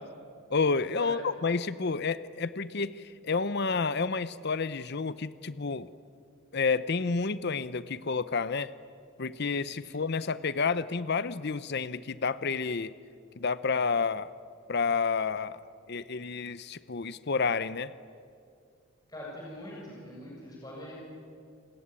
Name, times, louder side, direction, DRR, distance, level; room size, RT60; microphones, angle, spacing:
voice 1, 0.5-5.9 6.5-8.7 9.2-12.9 13.4-14.3 14.7-15.6 15.9-17.9, left 4 dB, 50° left, 15 dB, 0.7 m, -30 dB
voice 2, 19.1-20.9, left 1 dB, 20° left, -4 dB, 7.3 m, -43 dB
28.0 x 20.5 x 9.8 m, 2.3 s
head